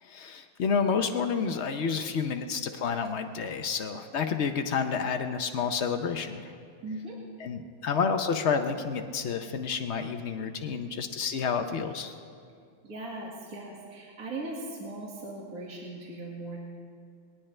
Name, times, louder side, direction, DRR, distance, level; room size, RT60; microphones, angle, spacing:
voice 1, 0.0-6.5 7.4-12.1, left 6 dB, 75° left, 6 dB, 0.6 m, -29 dB
voice 2, 6.8-7.2 12.8-16.6, right 2 dB, 45° right, -4 dB, 2.3 m, -39 dB
20.5 x 19.0 x 3.3 m, 2.3 s
omnidirectional pair, 2.2 m